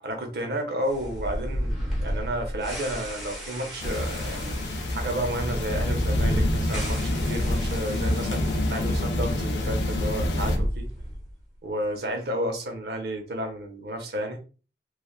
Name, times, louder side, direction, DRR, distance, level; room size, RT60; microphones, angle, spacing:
voice 1, 0.0-4.6 4.9-10.9 11.6-14.4, right 1 dB, 65° right, 0.7 m, -32 dB
sound 1, 0.8-9.0 9.3-9.4 10.0-11.4, equal, ahead, 0.9 m, -33 dB
sound 2, 3.8-10.6, left 1 dB, 85° left, 0.6 m, -27 dB
3.3 x 2.3 x 2.3 m
head